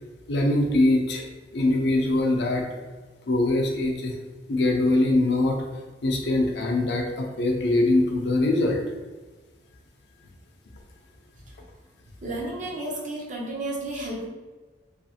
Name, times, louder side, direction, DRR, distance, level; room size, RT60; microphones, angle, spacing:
voice 1, 0.3-1.2 1.5-2.7 3.3-4.2 4.5-5.6 6.0-8.8, left 2 dB, 65° left, 1 dB, 0.5 m, -22 dB
voice 2, 12.2-14.3, right 1 dB, 45° right, -3 dB, 0.7 m, -32 dB
3.0 x 2.4 x 2.8 m, 1.3 s
head